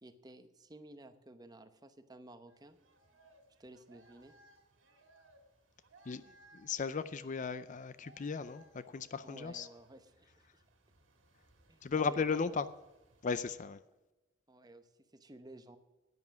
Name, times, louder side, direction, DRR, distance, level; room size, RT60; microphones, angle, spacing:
voice 1, 0.0-2.8 3.6-4.3 9.2-10.6 11.7-12.4 14.5-15.8, right 1 dB, 20° right, 0.9 m, -54 dB
sound 1, 2.5-13.6, right 2 dB, 70° right, 2.0 m, -65 dB
voice 2, 6.5-9.7 11.8-12.7 13.2-13.8, left 5 dB, 40° left, 0.4 m, -36 dB
10.5 x 9.6 x 6.0 m
head